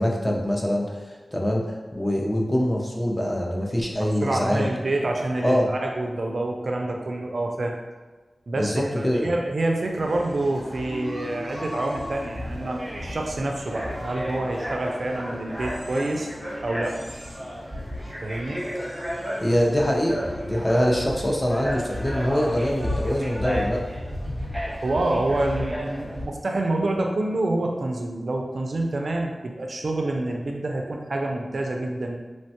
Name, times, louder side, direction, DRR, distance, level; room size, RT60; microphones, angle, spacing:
voice 1, 0.0-4.7 5.4-5.7 8.5-9.3 19.4-23.8, equal, 15° left, -1 dB, 0.5 m, -24 dB
voice 2, 4.0-7.7 8.5-16.3 16.6-17.0 18.2-18.6 24.8-32.2, right 2 dB, 65° right, 1 dB, 0.3 m, -27 dB
sound 1, 9.9-26.3, equal, 15° right, 0.9 m, -32 dB
3.1 x 2.1 x 2.8 m, 1.3 s
wide cardioid pair, 60°, 0 cm